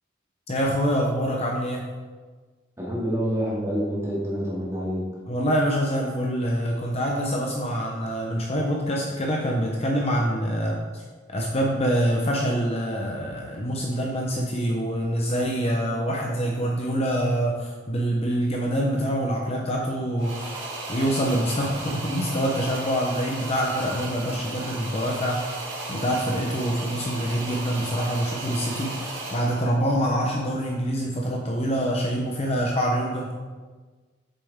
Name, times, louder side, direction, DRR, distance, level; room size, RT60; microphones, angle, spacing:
voice 1, 0.5-1.9 5.3-11.0 11.3-33.3, equal, 30° left, -1 dB, 0.8 m, -25 dB
voice 2, 2.8-5.0, equal, 15° right, -6 dB, 2.2 m, -27 dB
sound 1, 20.2-29.8, right 2 dB, 60° right, 1.9 m, -35 dB
8.2 x 6.8 x 3.6 m, 1.4 s
head